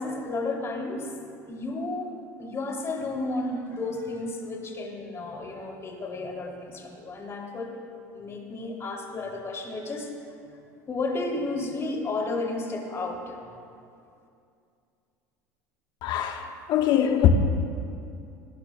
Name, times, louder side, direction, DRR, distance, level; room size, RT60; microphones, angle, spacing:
voice 1, 0.0-2.1 2.4-7.7 8.1-10.1 10.5-13.5, left 2 dB, 30° left, 0 dB, 3.1 m, -32 dB
voice 2, 16.0-17.3, left 11 dB, 55° left, 5 dB, 1.3 m, -22 dB
20.5 x 19.0 x 2.3 m, 2.5 s
hypercardioid pair, 80°, 9 cm